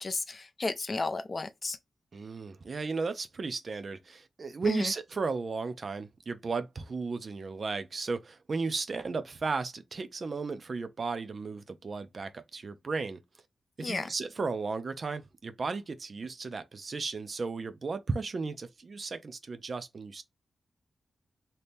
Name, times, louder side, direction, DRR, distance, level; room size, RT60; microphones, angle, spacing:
voice 1, 0.0-1.8 4.6-4.9 13.8-14.1, left 3 dB, 35° left, 0.3 m, -33 dB
voice 2, 2.1-13.2 13.8-20.2, right 4 dB, 45° right, 0.5 m, -35 dB
3.4 x 2.8 x 2.6 m
wide cardioid pair, 120°, 0 cm